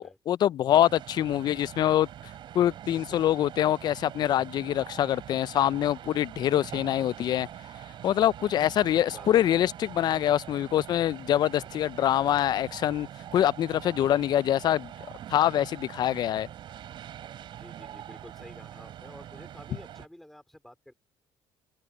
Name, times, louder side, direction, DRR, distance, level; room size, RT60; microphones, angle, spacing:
voice 1, 0.0-2.1 2.5-7.5 8.0-14.9 15.3-16.5, left 11 dB, 45° left, 0.3 m, -25 dB
sound 1, 0.7-20.1, right 11 dB, 55° right, 4.1 m, -44 dB
voice 2, 8.9-9.5 17.6-20.9, left 1 dB, 5° left, 3.4 m, -50 dB
open air
cardioid pair, 135°, 10 cm